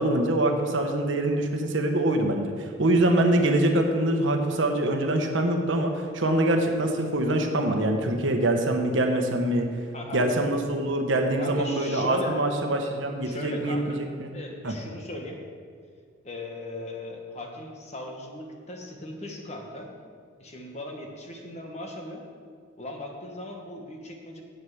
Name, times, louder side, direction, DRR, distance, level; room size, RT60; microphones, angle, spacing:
voice 1, 0.0-9.7 10.1-14.3 14.6-14.7, right 1 dB, 70° right, 4 dB, 1.1 m, -24 dB
voice 2, 11.4-12.4 13.2-14.0 14.3-15.4 16.2-19.9 20.4-22.2 22.8-24.4, left 1 dB, 35° left, 1 dB, 1.3 m, -38 dB
8.2 x 6.6 x 7.2 m, 2.1 s
head